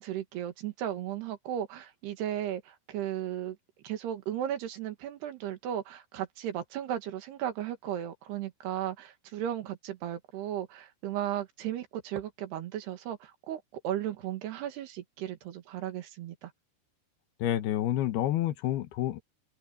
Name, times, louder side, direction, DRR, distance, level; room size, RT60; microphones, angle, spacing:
voice 1, 0.0-3.6 3.8-16.5, right 11 dB, 70° right, 3.8 m, -35 dB
voice 2, 17.4-19.2, left 12 dB, 70° left, 3.0 m, -29 dB
omnidirectional pair, 5.0 m